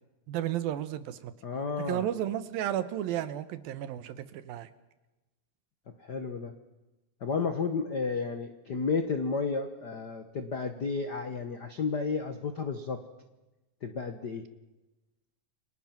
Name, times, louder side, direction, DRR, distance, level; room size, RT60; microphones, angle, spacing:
voice 1, 0.3-1.3 1.9-4.7, right 11 dB, 85° right, 13 dB, 2.9 m, -33 dB
voice 2, 1.4-2.1 6.0-6.5 7.2-13.0 13.8-14.4, left 4 dB, 75° left, 7 dB, 0.9 m, -32 dB
28.5 x 24.0 x 6.0 m, 1.1 s
omnidirectional pair, 4.1 m